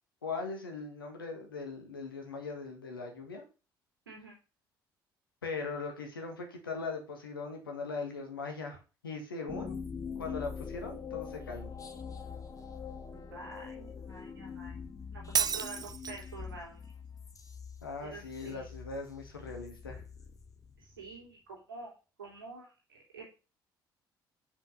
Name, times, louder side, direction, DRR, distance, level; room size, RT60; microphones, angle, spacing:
voice 1, 0.2-3.4 5.4-9.8 10.2-11.7 17.8-20.0, left 4 dB, 85° left, 3 dB, 1.6 m, -40 dB
sound 1, 9.5-21.0, left 6 dB, 30° left, 1.3 m, -44 dB
voice 2, 13.1-14.8 15.1-16.8 18.0-18.7 20.8-23.2, right 3 dB, 85° right, -2 dB, 3.1 m, -48 dB
Shatter, 15.3-16.3, right 7 dB, 35° right, 0.7 m, -31 dB
6.2 x 5.4 x 6.5 m, 0.32 s
figure-of-eight pair, 50°, 11 cm